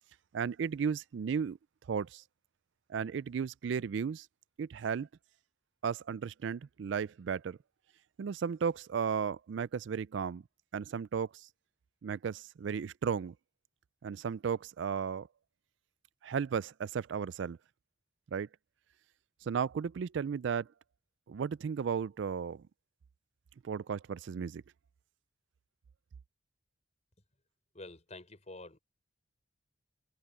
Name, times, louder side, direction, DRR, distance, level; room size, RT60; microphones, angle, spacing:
voice 1, 0.3-1.6 1.9-2.2 2.9-4.3 4.6-5.1 5.8-7.6 8.2-10.4 10.7-11.5 12.0-13.3 14.0-15.3 16.2-17.6 18.3-18.5 19.5-20.7 21.3-22.6 23.6-24.6, right 6 dB, 65° right, 0.3 m, -34 dB
voice 2, 27.7-28.8, left 2 dB, 35° left, 5.8 m, -48 dB
head